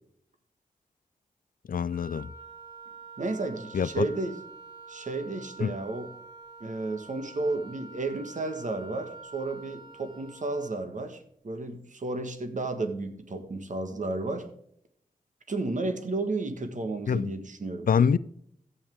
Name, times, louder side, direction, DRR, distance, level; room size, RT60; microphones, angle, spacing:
voice 1, 1.7-2.3 3.7-4.1 5.6-5.8 17.1-17.3 17.9-18.2, left 6 dB, 75° left, 0.5 m, -25 dB
Wind instrument woodwind instrument, 1.9-10.8, right 3 dB, 30° right, 3.7 m, -47 dB
voice 2, 3.2-4.4 4.9-6.1 6.6-14.4 15.5-17.9, right 2 dB, 60° right, 1.6 m, -32 dB
14.0 x 8.5 x 3.6 m
wide cardioid pair, 110°, 14 cm